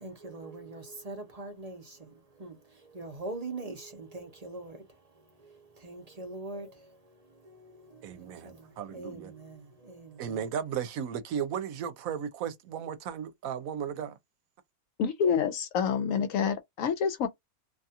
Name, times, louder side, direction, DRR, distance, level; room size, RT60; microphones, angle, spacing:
voice 1, 0.0-1.8 2.4-2.5 2.9-4.8 5.8-6.7 8.9-9.5 9.8-10.4, right 2 dB, 35° right, 0.6 m, -41 dB
voice 2, 8.0-9.3 10.2-14.1, right 8 dB, 80° right, 1.0 m, -35 dB
voice 3, 15.0-17.3, left 7 dB, 70° left, 0.9 m, -27 dB
2.6 x 2.3 x 2.7 m
omnidirectional pair, 1.5 m